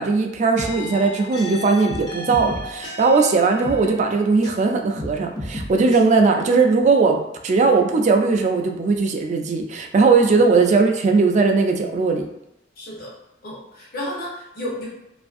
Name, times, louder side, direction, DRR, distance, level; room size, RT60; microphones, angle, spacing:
voice 1, 0.0-12.3, right 4 dB, 40° right, 4 dB, 0.3 m, -18 dB
sound 1, 0.6-4.6 5.0-6.0, left 1 dB, 25° left, 0.5 m, -33 dB
voice 2, 12.8-13.1 13.4-14.9, left 1 dB, 55° left, -5 dB, 0.8 m, -32 dB
2.6 x 2.5 x 2.4 m, 0.87 s
head